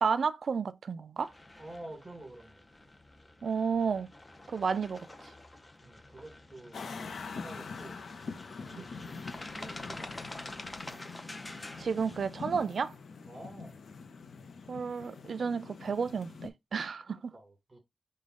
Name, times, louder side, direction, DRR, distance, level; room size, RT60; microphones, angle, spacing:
voice 1, 0.0-1.3 3.4-4.1 4.5-5.1 8.8-8.9 11.8-12.9 14.7-17.3, right 5 dB, 65° right, 0.3 m, -31 dB
sound 1, 1.2-12.7, left 2 dB, 20° left, 0.5 m, -48 dB
voice 2, 1.5-2.7 5.8-6.8 7.3-8.0 8.4-10.8 13.3-13.8 17.0-17.8, right 1 dB, 25° right, 1.5 m, -49 dB
sound 2, 6.7-16.5, left 4 dB, 75° left, 0.5 m, -44 dB
5.1 x 2.2 x 3.7 m
wide cardioid pair, 105°, 0 cm